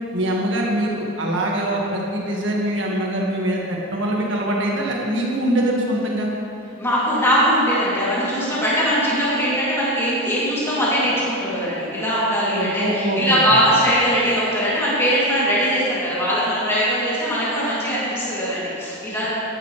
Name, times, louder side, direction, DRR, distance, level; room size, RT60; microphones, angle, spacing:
voice 1, 0.1-6.3 12.5-13.4, right 1 dB, 65° right, -2 dB, 1.9 m, -23 dB
voice 2, 6.8-19.3, equal, 15° left, -9 dB, 2.9 m, -21 dB
13.0 x 11.0 x 3.4 m, 2.7 s
head